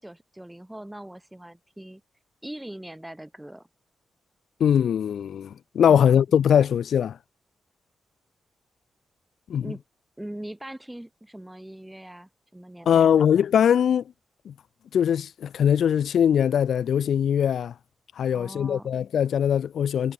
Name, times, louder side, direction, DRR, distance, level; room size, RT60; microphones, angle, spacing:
voice 1, 0.0-2.0 2.4-3.7 5.9-6.2 9.6-9.8 10.2-13.3 18.3-18.9, right 1 dB, 5° right, 3.5 m, -41 dB
voice 2, 4.6-7.2 9.5-9.7 12.9-14.0 14.5-14.6 14.9-17.7 18.2-20.1, left 8 dB, 80° left, 0.7 m, -21 dB
cardioid pair, 95°, 0 cm